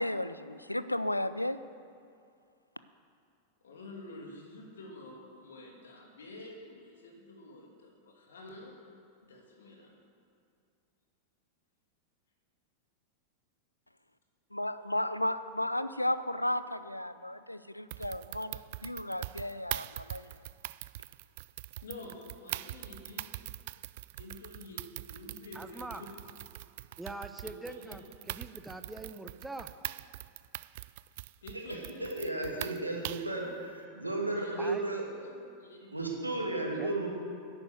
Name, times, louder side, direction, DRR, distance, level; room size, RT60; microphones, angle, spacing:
voice 1, 0.0-1.6 14.5-20.3, left 1 dB, 85° left, 14 dB, 0.5 m, -34 dB
voice 2, 3.6-8.7 9.2-9.9 21.8-23.3 24.2-24.8 25.1-26.1 27.4-28.0 31.4-32.0 32.5-33.5 34.3-34.6 35.2-36.1 36.7-36.9, left 2 dB, 65° left, 0 dB, 2.7 m, -49 dB
sound 1, 17.9-33.4, right 17 dB, 50° right, 0.3 m, -43 dB
voice 3, 25.5-26.0 27.0-29.7 34.6-34.8 36.8-36.9, right 2 dB, 5° right, 7 dB, 0.9 m, -43 dB
voice 4, 32.0-33.5 33.9-35.0 35.9-37.1, right 2 dB, 85° right, 0 dB, 2.2 m, -33 dB
10.5 x 10.5 x 8.0 m, 2.4 s
figure-of-eight pair, 90°, 0 cm